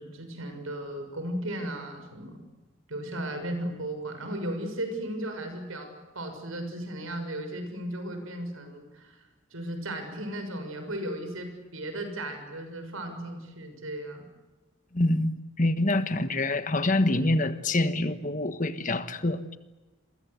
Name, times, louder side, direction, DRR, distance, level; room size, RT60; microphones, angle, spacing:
voice 1, 0.0-2.4 2.9-14.3, right 1 dB, 85° right, 6.7 m, -36 dB
voice 2, 14.9-15.3 15.6-19.4, left 2 dB, 40° left, 1.4 m, -26 dB
29.0 x 23.0 x 8.3 m
head